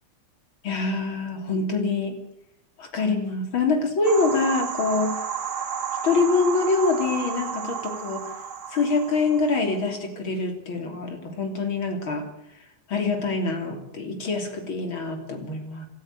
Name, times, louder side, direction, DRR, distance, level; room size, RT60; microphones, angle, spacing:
voice 1, 0.6-2.2 2.8-5.2 6.0-8.3 8.7-12.3 12.9-15.9, left 3 dB, 75° left, 5 dB, 4.0 m, -25 dB
sound 1, 4.0-9.8, right 7 dB, 40° right, 1.8 m, -32 dB
26.5 x 13.0 x 8.9 m, 0.76 s
omnidirectional pair, 2.2 m